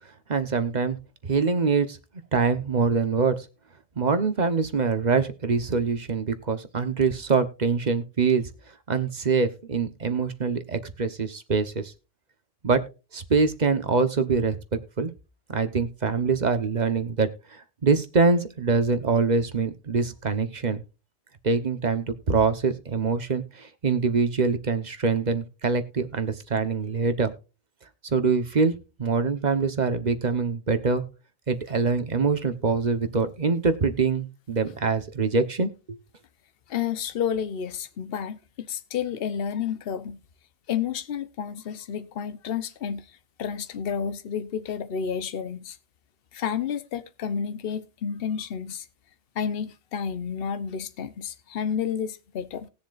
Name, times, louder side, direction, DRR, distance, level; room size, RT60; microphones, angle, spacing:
voice 1, 0.3-1.0 1.2-2.0 2.3-3.5 4.0-8.5 8.9-11.9 12.6-12.8 13.1-14.6 15.0-15.1 15.5-17.3 17.8-20.8 21.4-27.3 28.1-31.0 31.5-36.0, right 4 dB, 40° right, 1.1 m, -24 dB
voice 2, 36.7-40.2 40.7-45.8 46.3-48.9 49.3-52.7, left 7 dB, 60° left, 1.0 m, -30 dB
19.0 x 7.1 x 2.5 m
omnidirectional pair, 1.2 m